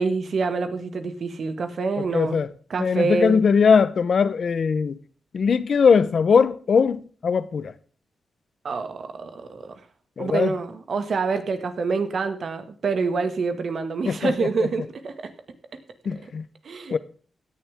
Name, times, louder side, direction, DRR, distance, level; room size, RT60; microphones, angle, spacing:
voice 1, 0.0-2.4 2.7-3.4 8.6-9.7 10.2-15.3 16.6-16.9, right 4 dB, 60° right, 2.0 m, -26 dB
voice 2, 2.0-2.5 2.8-4.9 5.3-7.7 10.2-10.5 14.1-14.3 16.0-16.4 16.9-17.0, left 6 dB, 60° left, 0.9 m, -20 dB
17.0 x 10.5 x 3.6 m
wide cardioid pair, 110°, 0 cm